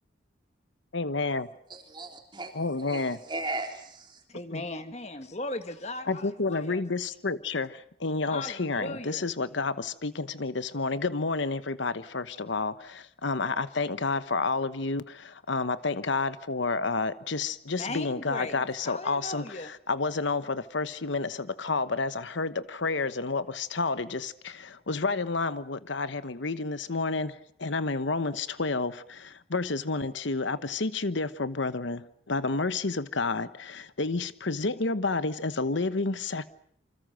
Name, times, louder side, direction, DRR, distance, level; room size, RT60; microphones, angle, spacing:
voice 1, 0.9-1.5 2.5-3.2 4.5-4.6 6.1-36.5, left 3 dB, 70° left, 1.1 m, -30 dB
voice 2, 1.7-2.5 2.9-4.2, right 2 dB, 25° right, 3.4 m, -37 dB
voice 3, 4.3-6.8 8.3-9.3 17.8-19.7, left 2 dB, 35° left, 1.5 m, -38 dB
28.0 x 25.5 x 6.5 m
head